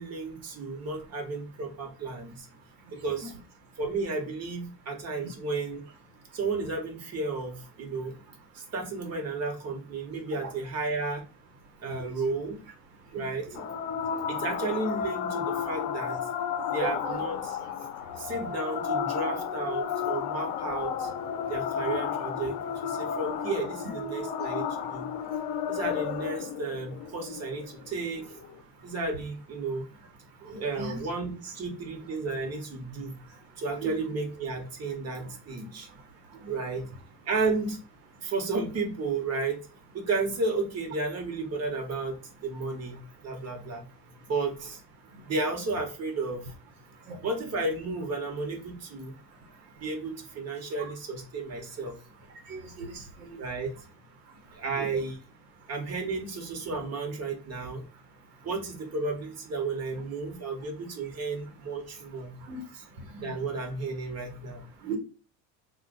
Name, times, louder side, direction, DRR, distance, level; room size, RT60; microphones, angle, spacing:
voice 1, 0.0-2.5 3.0-3.3 3.8-5.8 6.3-8.1 8.5-11.2 11.8-12.6 13.1-13.5 14.3-16.2 16.7-17.9 18.2-21.1 21.5-25.1 25.7-28.3 28.8-29.8 30.4-33.2 33.6-35.9 36.5-36.8 37.2-37.8 38.2-39.6 39.9-43.9 44.3-44.8 45.3-46.5 47.2-49.1 49.8-51.9 53.4-53.7 54.5-55.2 55.7-57.8 58.4-62.4 63.2-64.6, right 3 dB, 30° right, 2 dB, 1.3 m, -33 dB
sound 1, 13.5-28.5, left 7 dB, 55° left, 0.7 m, -32 dB
voice 2, 30.5-31.0 33.8-33.9 47.1-47.2 52.5-53.4 62.5-62.6 64.8-65.0, right 5 dB, 75° right, 4 dB, 1.1 m, -36 dB
2.5 x 2.5 x 3.9 m, 0.34 s
hypercardioid pair, 80°, 48 cm